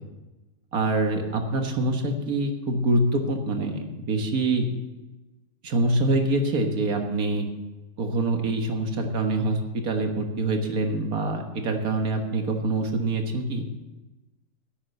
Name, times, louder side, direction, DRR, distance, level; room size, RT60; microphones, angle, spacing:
voice 1, 0.7-4.7 5.6-7.5 8.0-13.6, right 2 dB, 80° right, 4 dB, 1.9 m, -25 dB
10.5 x 8.7 x 6.8 m, 1.1 s
omnidirectional pair, 1.5 m